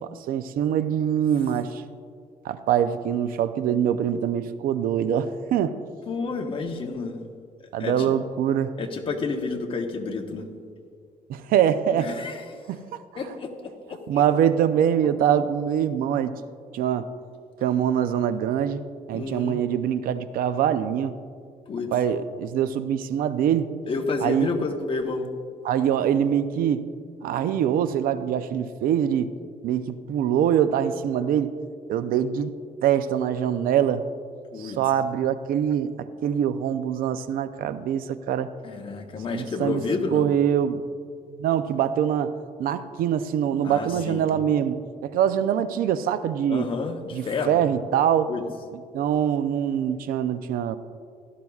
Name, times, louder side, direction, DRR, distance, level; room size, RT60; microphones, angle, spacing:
voice 1, 0.0-1.8 2.4-5.8 7.7-8.7 11.3-12.1 12.7-13.0 14.1-16.3 16.7-17.1 17.6-18.8 19.1-21.1 21.9-23.7 24.2-24.5 25.6-26.8 27.2-29.3 29.6-31.5 31.9-32.5 32.8-34.0 34.6-38.5 39.3-39.8 40.1-40.8 41.4-46.6 47.1-48.3 48.9-50.8, right 9 dB, 80° right, 12 dB, 0.5 m, -24 dB
voice 2, 6.1-7.3 7.6-8.2 8.8-10.5 11.9-12.6 13.1-14.2 19.1-19.6 21.7-21.9 23.9-25.3 34.5-34.8 38.6-40.3 43.6-44.2 46.5-47.6 48.3-48.4, left 4 dB, 35° left, 3 dB, 1.1 m, -30 dB
16.5 x 12.0 x 2.4 m, 2.2 s
cardioid pair, 140°, 15 cm